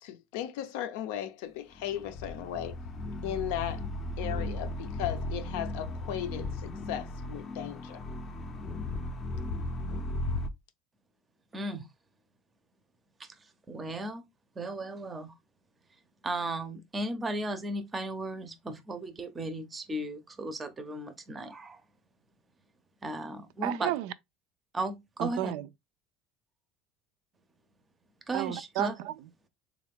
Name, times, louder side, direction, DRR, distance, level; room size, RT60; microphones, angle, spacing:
voice 1, 0.0-2.8 3.2-3.9 4.2-8.0, left 11 dB, 80° left, 0.5 m, -36 dB
sound 1, 1.8-10.5, left 2 dB, 30° left, 0.5 m, -36 dB
voice 2, 11.5-11.8 13.7-14.2 14.6-15.3 16.2-21.8 23.0-23.9 24.7-25.5 28.3-28.9, right 2 dB, 20° right, 0.6 m, -35 dB
voice 3, 23.6-24.1 25.2-25.7 28.3-29.5, right 13 dB, 75° right, 0.3 m, -33 dB
3.6 x 2.3 x 3.4 m
cardioid pair, 140°, 0 cm